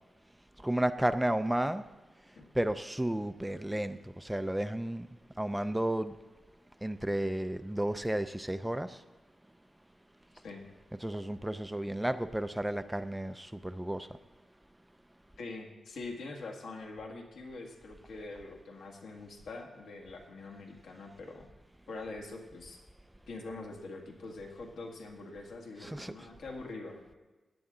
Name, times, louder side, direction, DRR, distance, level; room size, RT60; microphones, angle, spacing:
voice 1, 0.6-1.8 2.5-5.1 5.4-6.1 6.8-9.0 11.0-14.1 25.8-26.1, right 1 dB, 5° right, 11 dB, 0.3 m, -32 dB
voice 2, 15.4-21.5 21.9-22.8 23.3-27.1, left 3 dB, 85° left, 2 dB, 1.9 m, -44 dB
16.5 x 10.0 x 3.8 m, 1.2 s
wide cardioid pair, 175°, 0 cm